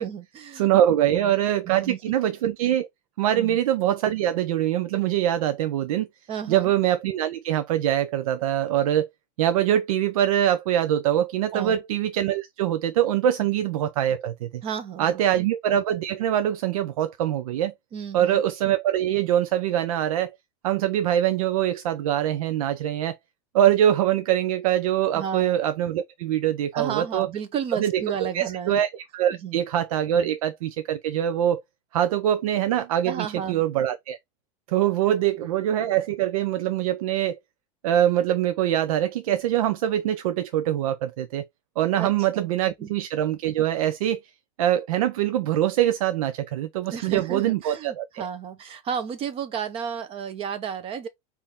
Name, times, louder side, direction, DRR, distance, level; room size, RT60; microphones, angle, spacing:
voice 1, 0.0-1.3 1.7-2.0 3.3-3.6 6.3-6.7 11.5-11.8 14.6-15.4 17.9-18.4 25.1-25.5 26.7-28.8 29.4-29.6 30.2-30.3 33.0-33.6 35.1-35.5 42.0-42.5 42.8-42.9 46.9-51.1, right 8 dB, 30° right, 0.8 m, -33 dB
voice 2, 0.5-2.9 3.2-6.1 6.5-9.1 9.4-14.6 15.0-17.7 18.1-20.3 20.6-23.2 23.5-27.3 27.8-31.6 31.9-34.2 34.7-37.4 37.8-41.5 41.8-44.2 44.6-48.3, right 11 dB, 85° right, 0.5 m, -23 dB
4.2 x 2.7 x 3.5 m
supercardioid pair, 135°, 18 cm